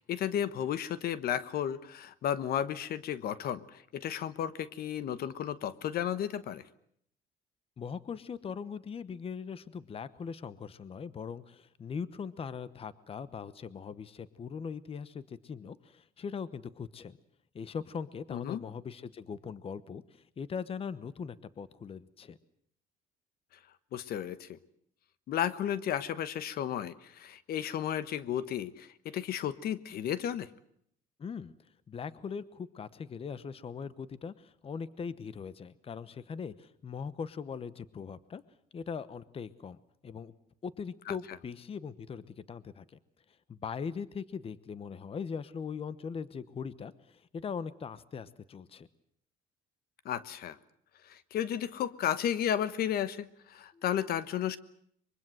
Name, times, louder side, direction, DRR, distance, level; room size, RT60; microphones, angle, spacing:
voice 1, 0.0-6.6 18.3-18.6 23.9-24.6 25.3-30.5 41.1-41.2 50.0-50.6 51.1-54.6, left 10 dB, 65° left, 15 dB, 1.2 m, -33 dB
voice 2, 7.8-17.2 17.5-22.4 31.2-31.5 31.9-38.4 38.7-39.8 40.0-40.3 40.6-43.0 43.5-48.9 53.7-53.8, left 6 dB, 35° left, 16 dB, 1.0 m, -40 dB
24.0 x 23.0 x 7.8 m, 0.67 s
cardioid pair, 110°, 17 cm